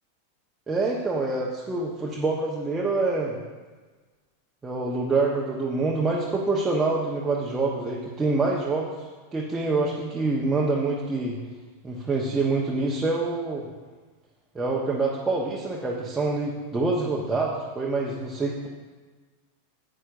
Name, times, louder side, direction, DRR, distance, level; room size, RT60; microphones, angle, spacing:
voice 1, 0.7-3.4 4.6-8.9 9.3-11.4 11.8-13.7 14.5-18.7, right 3 dB, 15° right, -3 dB, 1.2 m, -26 dB
14.0 x 8.9 x 2.7 m, 1.4 s
figure-of-eight pair, 90°, 0 cm